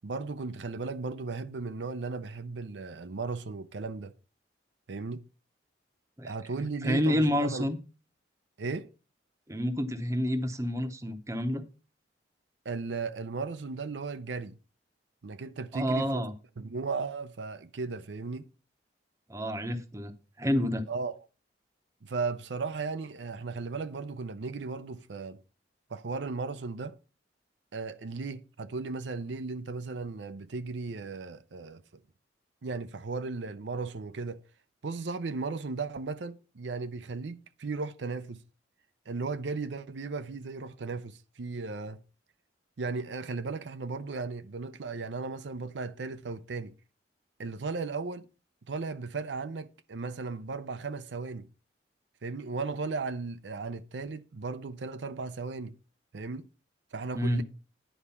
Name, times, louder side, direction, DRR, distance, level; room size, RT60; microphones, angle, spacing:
voice 1, 0.0-4.1 4.9-5.2 6.2-7.7 8.6-8.9 12.6-14.6 15.2-16.2 16.6-18.5 20.9-21.2 22.0-25.4 25.9-27.0 27.7-32.0 32.6-34.4 34.8-38.4 39.1-42.0 42.8-46.7 47.4-48.3 48.7-51.5 52.2-55.7 56.1-56.5 56.9-57.4, right 4 dB, 75° right, 0.6 m, -36 dB
voice 2, 6.8-7.8 9.5-11.6 15.7-16.3 19.3-20.8 57.1-57.4, equal, 15° right, 0.8 m, -29 dB
10.0 x 4.8 x 5.6 m
head